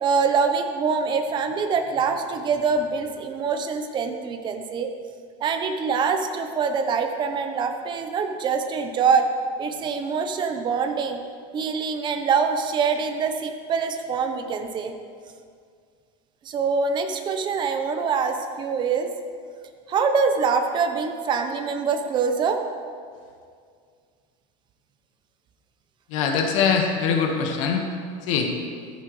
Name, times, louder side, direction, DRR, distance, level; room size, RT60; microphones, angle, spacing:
voice 1, 0.0-4.9 5.4-9.3 9.6-11.2 11.5-14.9 16.4-19.1 19.9-22.6, right 5 dB, 30° right, 6 dB, 1.0 m, -24 dB
voice 2, 26.1-27.9 28.3-28.5, left 6 dB, 85° left, 2 dB, 1.7 m, -22 dB
14.5 x 14.5 x 3.4 m, 2.1 s
cardioid pair, 160°, 16 cm